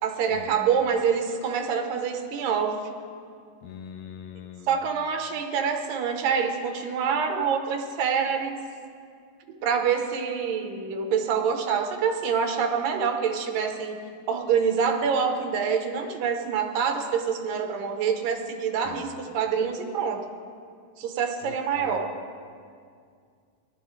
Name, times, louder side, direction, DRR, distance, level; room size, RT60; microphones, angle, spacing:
voice 1, 0.0-2.8 4.7-8.6 9.5-14.0 14.3-20.2 21.0-22.1, right 6 dB, 85° right, 4 dB, 2.8 m, -26 dB
voice 2, 3.6-4.7 18.8-19.1 21.4-22.0, left 8 dB, 80° left, 6 dB, 1.6 m, -42 dB
18.5 x 12.5 x 3.2 m, 2.2 s
omnidirectional pair, 3.8 m